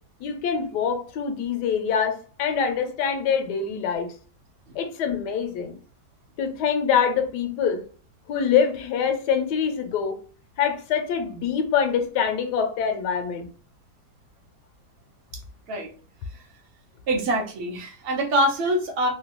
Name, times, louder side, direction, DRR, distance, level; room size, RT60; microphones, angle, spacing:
voice 1, 0.2-4.1 4.7-5.8 6.4-7.8 8.3-10.2 10.6-13.5, left 7 dB, 80° left, 1.2 m, -24 dB
voice 2, 17.1-19.1, right 1 dB, 55° right, 0.6 m, -24 dB
3.1 x 2.3 x 2.9 m
omnidirectional pair, 1.8 m